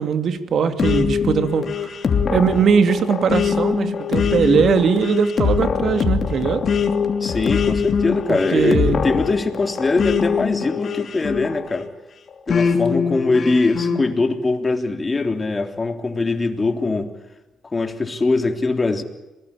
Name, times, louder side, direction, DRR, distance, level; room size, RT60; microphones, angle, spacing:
voice 1, 0.0-1.7 2.3-6.6 8.3-9.0 13.9-14.0, right 6 dB, 60° right, 9 dB, 2.5 m, -20 dB
sound 1, 0.8-11.9 12.5-14.0, left 6 dB, 50° left, 3.0 m, -22 dB
voice 2, 7.2-11.9 12.5-17.1 17.6-19.0, left 3 dB, 25° left, 5 dB, 3.5 m, -22 dB
27.0 x 20.5 x 8.8 m, 1.0 s
cardioid pair, 90°, 0 cm